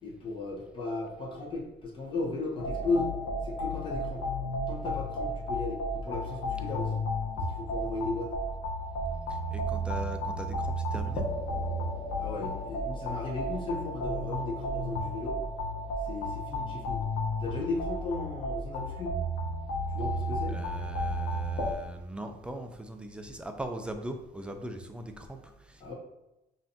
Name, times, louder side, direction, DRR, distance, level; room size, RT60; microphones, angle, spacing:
voice 1, 0.0-3.1 3.4-4.3 4.7-7.0 7.3-8.3 12.2-15.4 16.0-17.0 17.4-19.2 19.9-20.6 25.8-25.9, left 3 dB, 30° left, -3 dB, 1.2 m, -35 dB
sound 1, 2.6-21.7, equal, 85° left, 0.9 m, -33 dB
voice 2, 9.3-11.3 20.4-25.9, right 1 dB, 5° right, 5 dB, 0.4 m, -40 dB
5.4 x 2.7 x 2.7 m, 0.94 s
cardioid pair, 110°, 17 cm